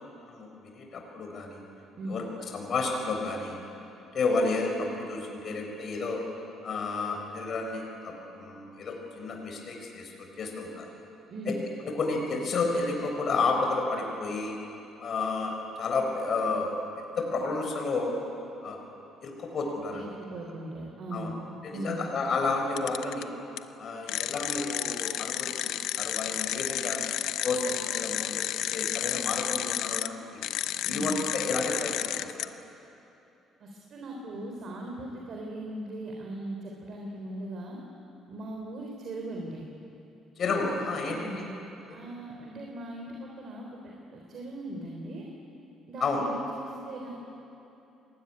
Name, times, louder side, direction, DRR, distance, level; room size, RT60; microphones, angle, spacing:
voice 1, 0.0-1.6 2.1-2.2 2.5-3.6 4.1-6.2 6.6-10.9 11.5-11.6 11.8-14.5 15.0-16.7 17.2-18.2 18.6-18.8 19.2-20.1 21.1-21.3 21.6-23.3 23.8-25.7 26.0-27.0 27.4-28.4 28.7-30.4 30.9-32.5 40.4-41.5 41.8-42.0 46.0-46.2, left 3 dB, 45° left, 1 dB, 4.4 m, -31 dB
voice 2, 19.9-21.3 21.7-22.1 30.8-31.1 33.6-37.8 38.3-39.7 41.1-41.5 41.9-45.3 45.9-47.1, right 1 dB, 45° right, 0 dB, 3.6 m, -39 dB
sound 1, 22.8-23.2 23.6-23.7 24.1-30.1 30.4-32.4, left 12 dB, 75° left, 0.8 m, -31 dB
26.0 x 20.5 x 9.9 m, 2.9 s
cardioid pair, 145°, 0 cm